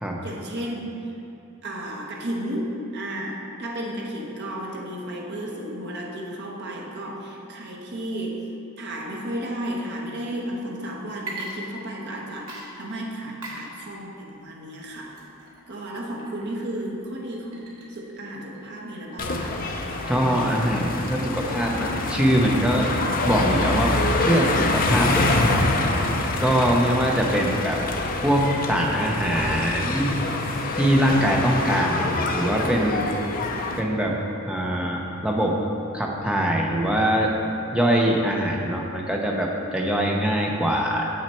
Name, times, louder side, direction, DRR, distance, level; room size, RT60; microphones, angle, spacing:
voice 1, 0.2-1.0 1.6-8.4 8.8-15.1 15.7-19.6, right 1 dB, 50° right, -1 dB, 1.1 m, -33 dB
Water / Liquid, 11.1-12.2 12.5-20.7, right 2 dB, 75° right, 1.2 m, -42 dB
sound 1, 19.2-33.8, left 2 dB, 40° left, 0.6 m, -25 dB
voice 2, 20.1-22.9 23.2-25.6 26.4-27.8 28.2-30.1 30.7-33.1 33.8-35.6 35.9-37.3 37.7-41.1, equal, 5° right, -1 dB, 0.7 m, -23 dB
7.4 x 6.0 x 4.4 m, 2.7 s
head